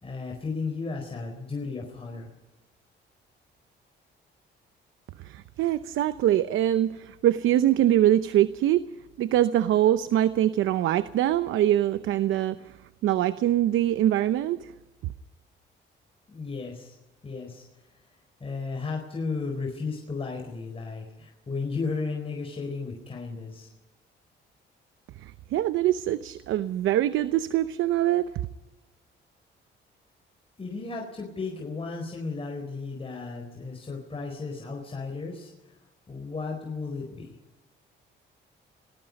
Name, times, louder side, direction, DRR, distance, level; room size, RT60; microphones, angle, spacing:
voice 1, 0.0-2.3 16.3-16.9 17.2-17.6 18.4-23.7 30.6-35.7 36.1-37.3, left 4 dB, 30° left, 1 dB, 4.3 m, -34 dB
voice 2, 5.2-8.8 9.2-12.6 13.0-14.7 15.0-15.1 25.2-28.3, right 12 dB, 85° right, 13 dB, 0.8 m, -23 dB
27.5 x 19.5 x 5.3 m, 1.1 s
cardioid pair, 90°, 20 cm